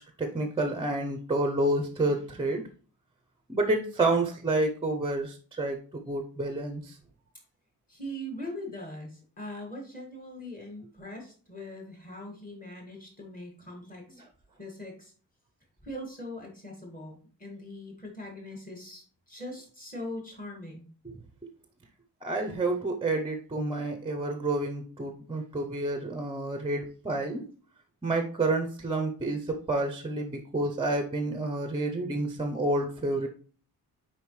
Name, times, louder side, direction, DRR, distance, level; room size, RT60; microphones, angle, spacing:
voice 1, 0.2-2.6 3.5-5.8 6.0-7.0 22.2-27.4 28.0-33.3, right 2 dB, 15° right, 5 dB, 0.6 m, -29 dB
voice 2, 7.9-14.2 14.6-15.1 15.8-20.9, left 1 dB, 20° left, 0 dB, 1.9 m, -41 dB
7.0 x 4.8 x 3.1 m, 0.41 s
wide cardioid pair, 175°, 38 cm